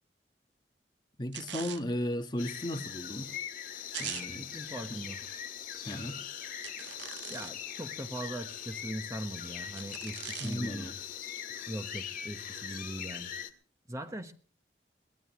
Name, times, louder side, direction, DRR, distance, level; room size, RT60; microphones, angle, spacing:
voice 1, 1.2-3.3 4.0-4.5 5.8-6.2 10.4-10.9, left 1 dB, 25° left, 1.5 m, -35 dB
sound 1, 1.3-1.8 3.9-4.3 6.6-7.7 9.7-10.6, right 10 dB, 85° right, 0.8 m, -41 dB
sound 2, 2.4-13.5, left 9 dB, 50° left, 1.9 m, -41 dB
voice 2, 4.3-5.3 7.3-10.9 11.7-13.3 13.9-14.3, right 1 dB, 20° right, 1.1 m, -40 dB
22.5 x 18.5 x 3.2 m
head